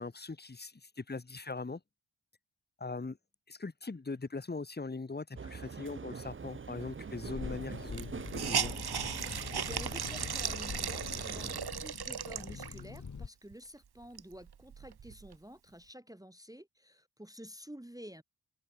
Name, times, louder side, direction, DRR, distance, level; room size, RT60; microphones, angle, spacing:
voice 1, 0.0-1.8 2.8-3.2 3.5-8.1 8.3-8.7, left 3 dB, 20° left, 1.2 m, -40 dB
sound 1, 5.3-11.6, right 5 dB, 30° right, 0.6 m, -44 dB
Hiss, 7.1-7.2 7.4-7.5 7.9-13.0 13.5-13.6 14.0-15.4, right 8 dB, 55° right, 1.0 m, -37 dB
sound 2, 7.3-13.3, left 5 dB, 40° left, 1.4 m, -44 dB
voice 2, 9.2-18.2, equal, 10° right, 1.1 m, -50 dB
wide cardioid pair, 115°, 45 cm